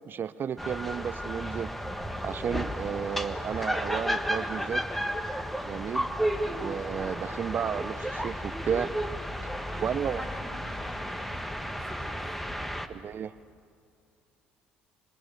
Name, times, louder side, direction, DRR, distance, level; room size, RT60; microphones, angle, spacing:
voice 1, 0.1-1.7 2.2-4.8 5.7-6.1 6.5-8.9 9.8-10.3 12.9-13.3, right 8 dB, 45° right, 15 dB, 0.5 m, -33 dB
sound 1, 0.6-12.9, equal, 5° left, 1.6 m, -33 dB
voice 2, 9.7-12.2, left 1 dB, 20° left, 2 dB, 6.2 m, -45 dB
26.5 x 23.5 x 6.7 m, 2.4 s
hypercardioid pair, 55°, 5 cm